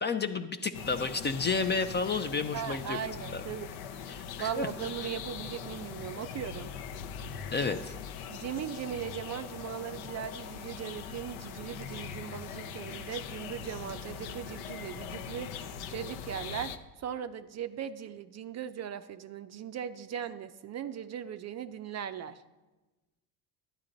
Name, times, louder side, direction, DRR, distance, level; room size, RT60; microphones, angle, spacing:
voice 1, 0.0-3.0 3.3-3.4 4.1-4.7 7.5-7.9, left 4 dB, 25° left, 10 dB, 0.4 m, -31 dB
sound 1, 0.7-16.8, left 7 dB, 65° left, 0.8 m, -41 dB
voice 2, 2.5-3.7 4.0-6.7 8.3-16.7 17.0-22.4, right 9 dB, 35° right, 10 dB, 0.4 m, -39 dB
11.5 x 9.0 x 3.8 m, 1.1 s
hypercardioid pair, 75°, 50 cm